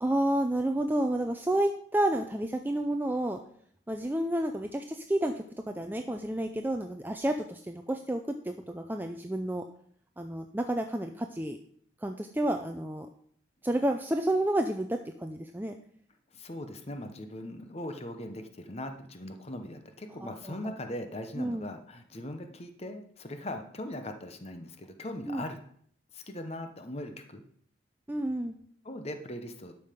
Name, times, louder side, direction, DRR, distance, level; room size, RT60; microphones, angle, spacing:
voice 1, 0.0-3.4 3.9-9.6 10.2-11.6 12.0-13.1 13.6-15.8 20.2-20.7 21.4-21.7 25.3-25.4 28.1-28.5, right 1 dB, 10° right, 5 dB, 0.4 m, -30 dB
voice 2, 16.3-25.6 26.1-27.4 28.8-29.7, left 1 dB, 30° left, 7 dB, 0.9 m, -40 dB
12.0 x 5.6 x 5.1 m, 0.62 s
head